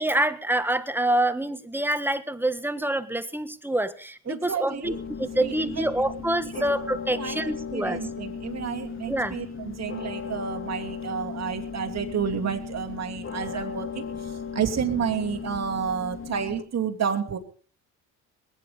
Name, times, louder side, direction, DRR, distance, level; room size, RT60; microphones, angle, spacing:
voice 1, 0.0-8.0 9.0-9.3, right 1 dB, 5° right, 11 dB, 1.5 m, -26 dB
voice 2, 4.3-5.0 5.3-5.8 6.4-6.6 7.2-14.1 14.5-17.4, right 7 dB, 45° right, 2 dB, 2.8 m, -30 dB
sound 1, 4.8-16.6, left 6 dB, 35° left, 2.0 m, -36 dB
20.5 x 9.5 x 5.4 m, 0.42 s
supercardioid pair, 75°, 37 cm